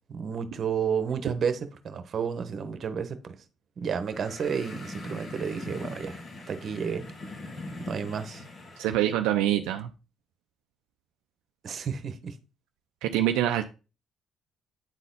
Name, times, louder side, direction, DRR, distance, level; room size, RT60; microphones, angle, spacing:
voice 1, 0.1-3.4 3.8-6.2 6.5-7.1 7.9-8.4 11.6-12.3, right 7 dB, 55° right, 1.1 m, -31 dB
sound 1, 4.0-9.0, left 2 dB, 50° left, 2.5 m, -41 dB
voice 2, 8.8-9.9 13.0-13.6, right 12 dB, 85° right, 0.5 m, -25 dB
8.8 x 4.1 x 3.9 m
supercardioid pair, 70°, 0 cm